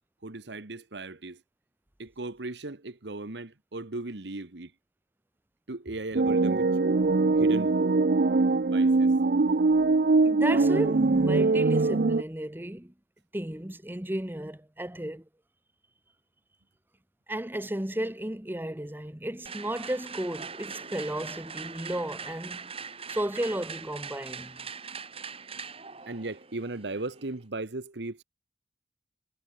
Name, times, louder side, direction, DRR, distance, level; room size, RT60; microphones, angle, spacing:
voice 1, 0.2-1.4 2.0-4.7 5.7-6.8 7.3-7.8 8.7-9.1 26.1-28.2, right 2 dB, 75° right, 1.4 m, -37 dB
sound 1, 6.1-12.2, right 3 dB, 60° right, 0.6 m, -22 dB
voice 2, 10.2-12.9 13.3-15.2 17.3-22.7 23.1-24.6, right 1 dB, 10° right, 1.1 m, -34 dB
sound 2, 19.5-27.4, right 6 dB, 35° right, 6.7 m, -42 dB
head